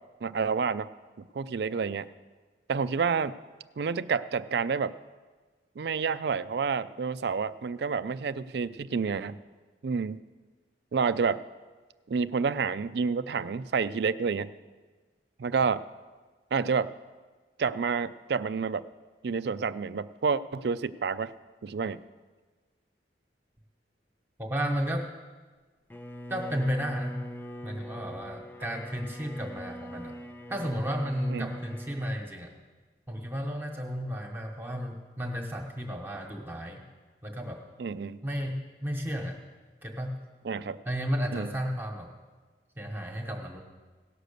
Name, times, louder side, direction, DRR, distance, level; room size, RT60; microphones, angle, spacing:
voice 1, 0.2-0.9 1.2-2.1 2.7-3.4 3.8-4.9 5.8-9.4 9.8-10.2 10.9-11.4 12.1-14.5 15.4-15.8 16.5-16.9 17.6-18.8 19.2-21.3 21.6-22.0 31.3-31.5 37.8-38.2 40.4-40.8 41.3-41.5, right 5 dB, 65° right, 15 dB, 0.4 m, -29 dB
voice 2, 24.4-25.1 26.3-27.2 27.6-30.1 30.5-32.5 33.1-36.8 37.2-37.6 38.2-39.4 39.8-40.2 40.8-42.1 42.8-43.6, equal, 10° right, 2 dB, 1.1 m, -33 dB
Bowed string instrument, 25.9-32.2, equal, 10° left, 0.4 m, -42 dB
17.0 x 6.4 x 6.7 m, 1.4 s
head